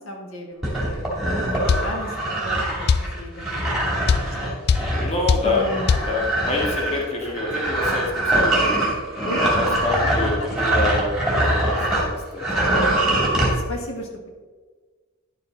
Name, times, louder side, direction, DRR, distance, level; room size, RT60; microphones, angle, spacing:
voice 1, 0.0-4.6 5.4-5.9 9.2-9.9 10.2-10.5 13.3-14.3, equal, 70° left, 1 dB, 1.6 m, -34 dB
sound 1, 0.6-12.1 12.4-13.5, right 1 dB, 5° right, 2.7 m, -23 dB
sound 2, 1.7-1.9 2.9-3.1 4.1-4.3 4.7-4.9 5.3-5.5 5.9-6.1, left 5 dB, 50° left, 0.3 m, -18 dB
voice 2, 5.0-5.6 6.1-8.9 9.6-11.2 11.6-12.6, left 2 dB, 30° left, -1 dB, 1.7 m, -27 dB
11.5 x 6.7 x 4.0 m, 1.4 s
head